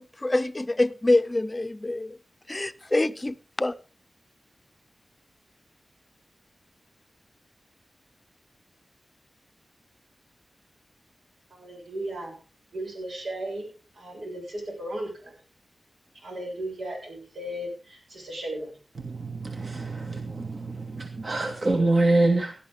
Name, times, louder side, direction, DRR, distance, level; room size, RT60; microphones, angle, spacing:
voice 1, 0.0-2.2 2.5-3.7, left 2 dB, 25° left, 0.6 m, -25 dB
voice 2, 11.5-12.3 12.7-15.3 16.2-18.8, right 1 dB, 85° right, 7.6 m, -36 dB
voice 3, 19.0-22.5, right 2 dB, 50° right, 2.1 m, -25 dB
18.0 x 12.0 x 3.7 m
wide cardioid pair, 80°, 0 cm